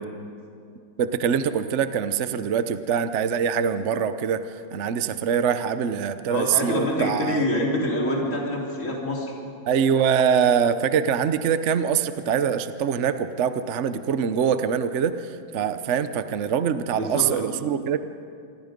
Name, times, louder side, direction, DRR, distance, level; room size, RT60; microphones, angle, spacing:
voice 1, 1.0-7.4 9.7-18.0, right 7 dB, 55° right, 11 dB, 0.8 m, -24 dB
voice 2, 6.3-9.3 17.0-17.5, left 1 dB, 35° left, -3 dB, 4.1 m, -26 dB
27.0 x 24.5 x 5.2 m, 2.5 s
omnidirectional pair, 2.2 m